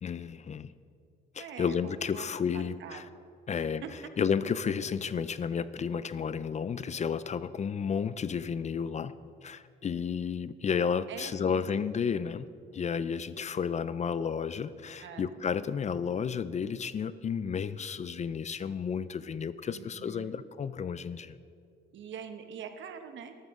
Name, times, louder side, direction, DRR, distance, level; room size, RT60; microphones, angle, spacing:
voice 1, 0.0-0.7 1.3-3.1 3.5-3.8 4.2-9.1 9.4-12.5 12.7-21.4, left 6 dB, 35° left, 15 dB, 0.4 m, -32 dB
voice 2, 1.4-2.3 2.5-3.0 3.5-3.9 11.1-11.6 15.0-15.4 19.7-20.5 21.9-23.3, right 7 dB, 70° right, 7 dB, 1.1 m, -44 dB
13.0 x 13.0 x 3.7 m, 2.3 s
cardioid pair, 90°, 20 cm